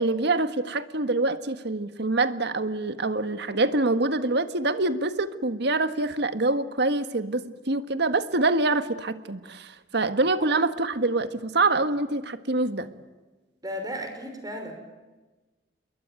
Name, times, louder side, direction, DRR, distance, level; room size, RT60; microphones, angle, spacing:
voice 1, 0.0-12.9, right 2 dB, 65° right, 10 dB, 1.6 m, -25 dB
voice 2, 13.6-14.8, equal, 20° right, 5 dB, 5.6 m, -34 dB
28.0 x 22.5 x 9.1 m, 1.2 s
head